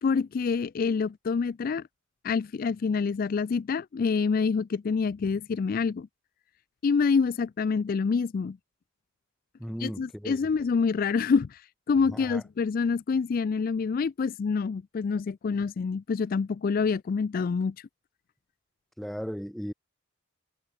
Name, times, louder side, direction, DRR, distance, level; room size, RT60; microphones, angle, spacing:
voice 1, 0.0-1.9 2.2-6.1 6.8-8.6 9.8-17.9, left 5 dB, 45° left, 0.3 m, -27 dB
voice 2, 9.6-10.4 12.1-12.4 19.0-19.7, equal, ahead, 1.4 m, -36 dB
head